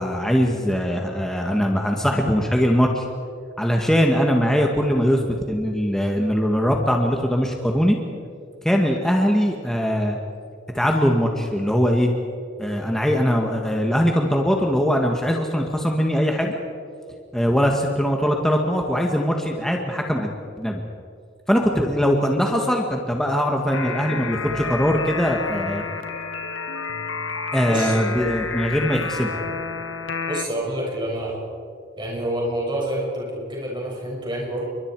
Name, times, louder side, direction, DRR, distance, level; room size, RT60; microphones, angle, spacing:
voice 1, 0.0-3.1 3.6-5.2 5.5-8.0 8.6-10.2 10.7-12.1 12.6-16.6 17.3-20.3 20.6-20.8 21.5-25.8 27.5-29.4, equal, 5° left, 1 dB, 1.7 m, -21 dB
sound 1, 23.7-30.5, left 4 dB, 85° left, 1.7 m, -30 dB
voice 2, 30.3-31.4 32.0-34.6, right 1 dB, 25° right, -3 dB, 6.7 m, -27 dB
29.0 x 24.0 x 4.8 m, 2.3 s
head